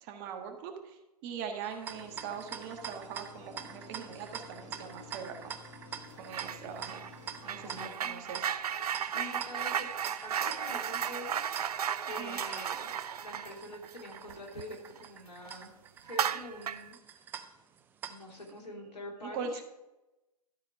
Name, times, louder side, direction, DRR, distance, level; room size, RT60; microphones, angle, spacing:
voice 1, 0.0-5.6 6.2-7.0 7.4-8.5 12.2-12.4 19.2-19.5, right 6 dB, 35° right, 5 dB, 1.4 m, -42 dB
sound 1, 1.6-18.5, right 8 dB, 10° right, 0.3 m, -46 dB
sound 2, 1.9-7.9, left 3 dB, 55° left, 2.6 m, -52 dB
sound 3, 6.3-6.6 6.9-15.1 15.4-15.5 16.1-16.9, right 9 dB, 70° right, 0.5 m, -35 dB
voice 2, 7.6-8.3 8.9-9.9 10.2-11.5 12.1-12.9 13.2-15.7 16.0-17.3 18.1-19.6, left 1 dB, 85° left, 0 dB, 2.9 m, -45 dB
13.0 x 4.4 x 4.8 m, 0.98 s
hypercardioid pair, 125°, 20 cm